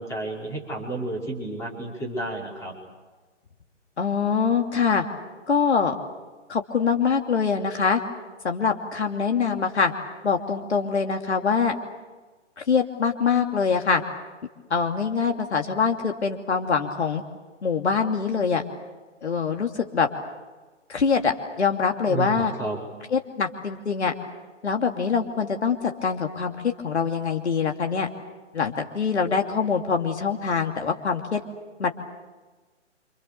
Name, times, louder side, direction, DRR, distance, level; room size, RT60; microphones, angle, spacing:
voice 1, 0.0-2.7 22.1-22.8, right 2 dB, 10° left, -2 dB, 5.1 m, -31 dB
voice 2, 4.0-5.0 5.5-5.9 6.5-8.0 8.4-9.9 10.2-11.7 12.7-14.0 14.7-17.2 17.6-18.6 19.2-20.1 20.9-22.5 23.1-24.1 24.6-28.1 28.5-31.4 31.8-31.9, left 5 dB, 65° left, 4 dB, 2.8 m, -24 dB
29.0 x 27.5 x 6.9 m, 1.3 s
figure-of-eight pair, 140°, 36 cm